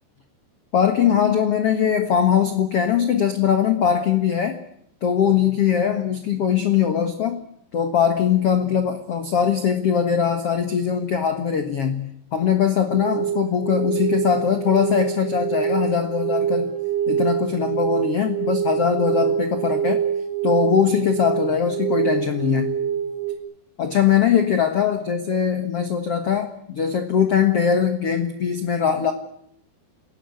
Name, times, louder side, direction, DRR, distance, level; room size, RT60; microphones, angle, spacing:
voice 1, 0.7-4.6 5.0-7.4 7.7-16.7 17.1-20.0 20.4-22.7 23.8-29.1, left 8 dB, 65° left, 7 dB, 1.5 m, -21 dB
sound 1, 12.9-23.4, right 8 dB, 20° right, 3.8 m, -25 dB
27.5 x 17.5 x 9.6 m, 0.72 s
omnidirectional pair, 5.1 m